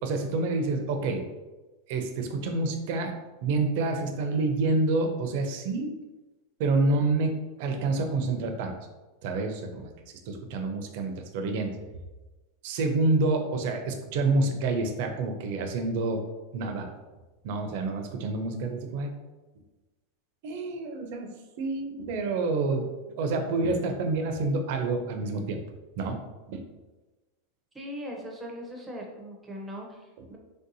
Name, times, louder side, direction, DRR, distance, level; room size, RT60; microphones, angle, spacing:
voice 1, 0.0-1.2 1.9-3.1 3.4-5.9 6.6-8.7 9.2-9.9 10.3-11.7 12.6-16.2 16.5-16.9 17.4-19.2 20.4-21.3 21.6-22.9 23.2-25.6 26.0-26.2 26.5-26.6, right 3 dB, 60° right, 5 dB, 0.5 m, -28 dB
voice 2, 27.7-30.4, equal, 10° right, 0 dB, 0.6 m, -40 dB
3.3 x 2.7 x 2.6 m, 1.2 s
supercardioid pair, 140°, 0 cm